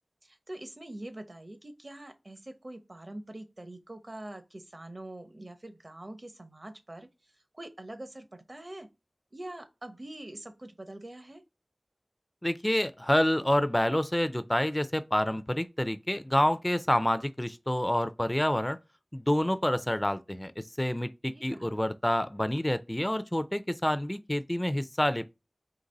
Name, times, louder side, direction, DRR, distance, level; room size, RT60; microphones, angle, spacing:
voice 1, 0.2-7.1 7.5-8.9 9.3-11.4 21.3-21.8, right 1 dB, 50° right, 0.8 m, -44 dB
voice 2, 12.4-18.8 19.1-25.3, left 1 dB, 20° left, 0.4 m, -28 dB
4.0 x 2.9 x 3.9 m
wide cardioid pair, 45°, 0 cm